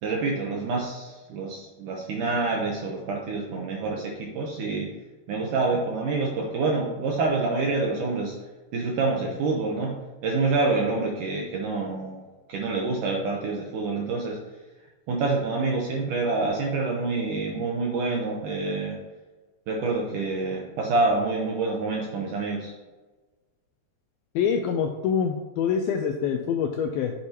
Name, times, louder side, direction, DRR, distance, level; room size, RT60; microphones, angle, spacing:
voice 1, 0.0-4.9 5.3-8.4 8.7-9.9 10.2-12.2 12.5-14.4 15.1-19.0 19.7-22.7, right 3 dB, 75° right, -1 dB, 1.9 m, -27 dB
voice 2, 24.4-27.1, left 7 dB, 85° left, 4 dB, 2.1 m, -25 dB
8.5 x 8.0 x 2.9 m, 1.2 s
omnidirectional pair, 4.8 m